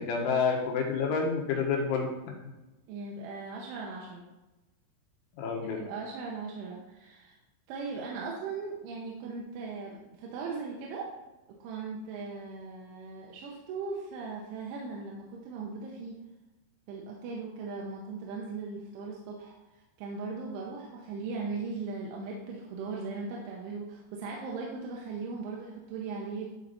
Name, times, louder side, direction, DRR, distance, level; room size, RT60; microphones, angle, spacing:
voice 1, 0.0-2.1 5.4-5.8, left 5 dB, 80° left, 1 dB, 3.7 m, -28 dB
voice 2, 2.9-4.3 5.6-7.4 7.7-11.1 11.6-16.1 16.9-26.5, right 4 dB, 85° right, -2 dB, 3.3 m, -38 dB
11.5 x 4.3 x 4.1 m, 1.0 s
omnidirectional pair, 5.5 m